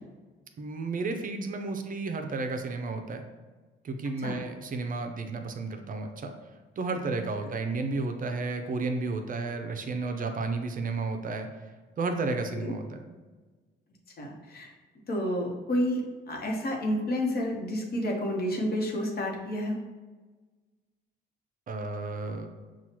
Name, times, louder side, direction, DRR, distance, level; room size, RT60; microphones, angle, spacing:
voice 1, 0.6-3.2 3.8-6.3 6.8-11.5 12.0-13.2 21.7-22.5, right 3 dB, 45° right, 5 dB, 0.5 m, -32 dB
voice 2, 14.2-14.7 15.1-19.8, equal, 50° left, 0 dB, 1.0 m, -30 dB
5.8 x 2.3 x 2.9 m, 1.3 s
cardioid pair, 90°, 20 cm